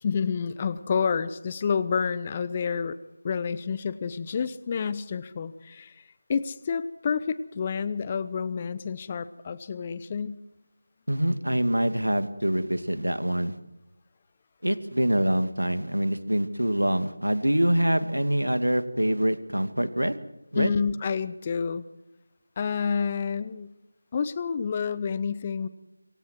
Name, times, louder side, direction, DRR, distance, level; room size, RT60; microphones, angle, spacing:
voice 1, 0.0-3.0 3.2-6.0 6.3-10.4 20.5-21.8 22.6-23.7 24.1-25.7, left 6 dB, 20° left, 16 dB, 0.9 m, -29 dB
voice 2, 11.1-13.6 14.6-20.2 20.5-20.7, right 1 dB, 80° right, 10 dB, 2.5 m, -25 dB
26.0 x 24.0 x 4.7 m, 0.91 s
figure-of-eight pair, 165°, 0 cm